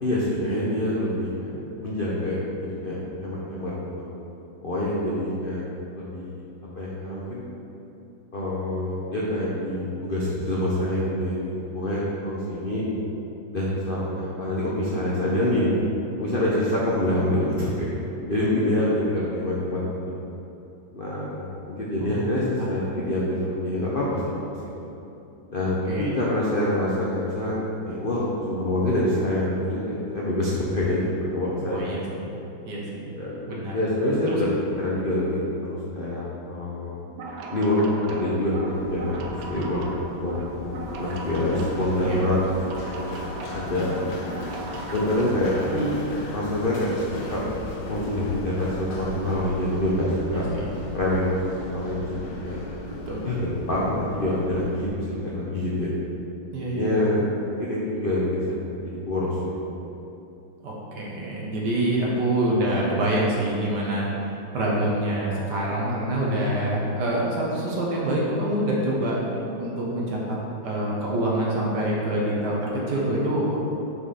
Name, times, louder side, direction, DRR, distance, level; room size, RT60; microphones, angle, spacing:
voice 1, 0.0-4.1 4.6-5.6 5.9-6.5 6.7-7.4 8.3-12.8 13.5-15.8 16.2-19.8 20.9-24.4 25.5-27.6 27.8-31.8 33.1-34.5 34.8-37.0 37.5-39.9 40.2-42.4 42.7-44.2 44.9-45.9 46.3-46.9 47.3-47.4 47.9-50.5 50.9-51.4 51.7-52.6 53.2-55.9 56.7-57.2 57.5-59.5, left 1 dB, 55° left, -6 dB, 0.6 m, -26 dB
voice 2, 31.6-32.3 32.7-33.0 33.5-33.8 42.0-42.2 50.3-50.7 53.1-53.3 56.5-57.0 60.6-69.2 69.6-70.4 70.6-73.6, right 1 dB, 60° right, -4 dB, 1.7 m, -26 dB
sound 1, 37.1-45.9, right 3 dB, 85° right, 1.4 m, -38 dB
Run, 38.7-54.9, left 2 dB, 70° left, 1.6 m, -37 dB
6.1 x 5.4 x 4.2 m, 2.9 s
omnidirectional pair, 2.1 m